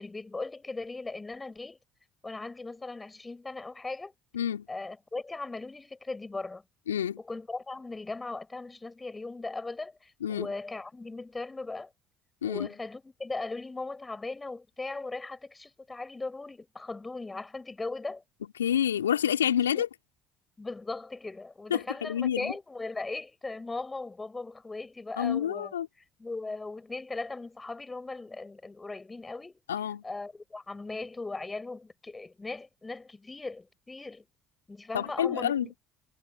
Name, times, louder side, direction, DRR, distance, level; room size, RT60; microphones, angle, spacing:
voice 1, 0.0-1.8 2.2-4.1 4.7-6.6 7.2-11.9 12.4-18.2 19.7-19.8 20.6-25.7 26.2-29.6 30.0-34.3 34.7-35.8, left 3 dB, 20° left, 5.3 m, -38 dB
voice 2, 4.3-4.6 6.9-7.2 10.2-10.5 12.4-12.7 18.6-19.9 21.7-22.5 25.2-25.9 29.7-30.0 34.9-35.7, left 9 dB, 85° left, 2.6 m, -28 dB
figure-of-eight pair, 55°, 0 cm